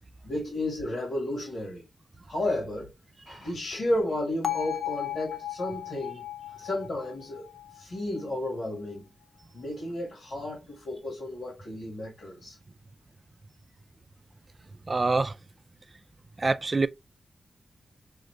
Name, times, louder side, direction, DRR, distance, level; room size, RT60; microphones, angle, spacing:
voice 1, 0.2-1.9 2.3-2.9 3.3-6.2 6.6-9.1 9.5-12.6, left 1 dB, 75° left, 1.8 m, -32 dB
Bell, 4.4-8.5, left 12 dB, 55° left, 0.5 m, -36 dB
voice 2, 14.9-15.3 16.4-16.9, right 3 dB, 35° right, 0.4 m, -25 dB
5.5 x 2.5 x 3.2 m
cardioid pair, 75°, 0 cm